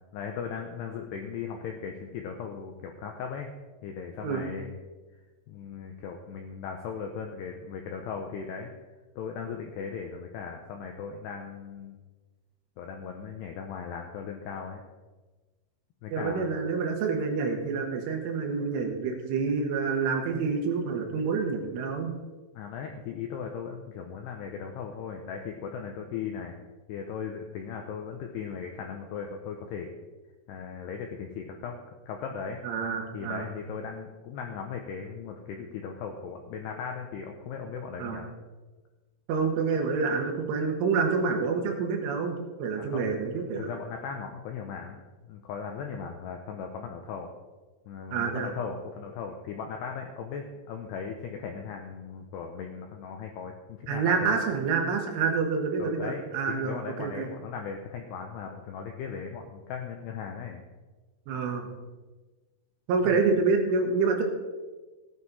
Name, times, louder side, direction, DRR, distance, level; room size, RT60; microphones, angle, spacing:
voice 1, 0.1-3.5 3.8-4.8 5.5-8.7 9.2-12.0 12.8-14.8 16.0-16.5 22.5-26.5 26.9-29.9 30.5-31.8 32.1-32.6 33.1-38.3 42.8-43.1 43.6-47.3 47.9-54.4 55.8-56.2 56.5-60.6 63.0-63.2, left 6 dB, 85° left, 3 dB, 2.4 m, -38 dB
voice 2, 16.1-22.1 32.6-33.5 38.0-38.2 39.3-43.7 48.1-48.5 53.9-57.3 61.3-61.7 62.9-64.2, right 5 dB, 75° right, 3 dB, 3.7 m, -27 dB
16.0 x 9.6 x 4.2 m, 1.3 s
omnidirectional pair, 5.9 m